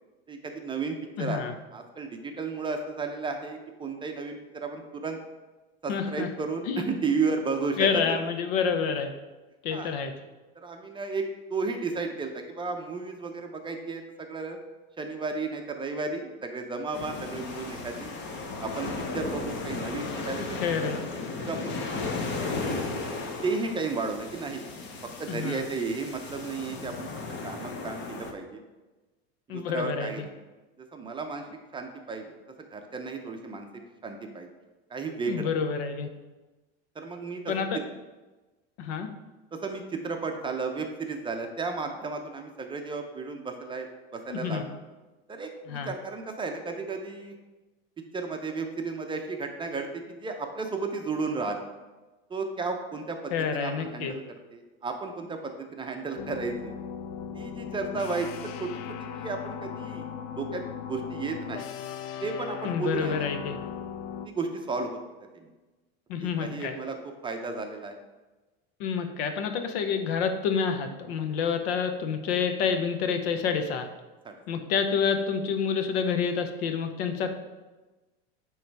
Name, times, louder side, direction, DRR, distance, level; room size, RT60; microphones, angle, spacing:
voice 1, 0.3-1.5 1.7-5.2 5.8-7.9 9.7-9.9 10.5-14.6 15.0-18.1 18.6-20.9 21.5-21.7 22.4-22.9 23.4-24.7 25.2-27.1 27.4-28.6 29.5-30.3 30.9-31.4 31.7-32.3 32.7-33.7 34.0-34.5 34.9-35.5 37.0-37.5 39.6-43.9 44.1-44.8 45.3-47.3 48.1-51.6 52.3-54.2 54.5-56.8 57.3-58.3 58.6-60.1 60.4-60.6 60.9-61.7 62.2-63.3 64.2-65.0 65.3-65.5 66.2-67.0 67.2-67.9 74.2-74.4, right 4 dB, 15° right, 4 dB, 0.6 m, -33 dB
voice 2, 1.2-1.5 5.9-6.3 6.7-6.9 7.8-9.1 9.6-10.1 20.6-21.0 25.3-25.6 29.5-30.3 35.3-36.1 37.5-37.7 38.8-39.1 44.3-44.6 45.7-45.9 53.3-54.1 62.6-63.6 66.1-66.8 68.8-73.9 74.5-77.3, left 6 dB, 75° left, 7 dB, 0.9 m, -28 dB
sound 1, 16.9-28.3, left 3 dB, 35° left, 0.9 m, -35 dB
sound 2, 56.2-64.3, left 8 dB, 50° left, 0.5 m, -38 dB
8.4 x 3.2 x 4.6 m, 1.2 s
supercardioid pair, 130°, 31 cm